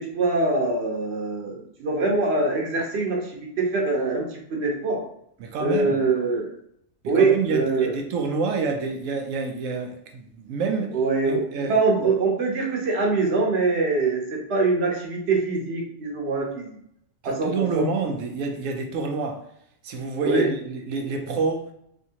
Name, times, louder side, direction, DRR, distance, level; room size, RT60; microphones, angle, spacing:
voice 1, 0.0-5.0 5.6-6.5 7.1-7.9 10.9-16.8 17.2-17.9 20.2-20.5, right 3 dB, 60° right, 0 dB, 1.0 m, -24 dB
voice 2, 5.4-6.0 7.0-10.9 11.2-12.1 17.2-19.4 19.8-21.7, right 4 dB, 85° right, 4 dB, 1.0 m, -28 dB
3.4 x 2.8 x 2.8 m, 0.73 s
omnidirectional pair, 1.3 m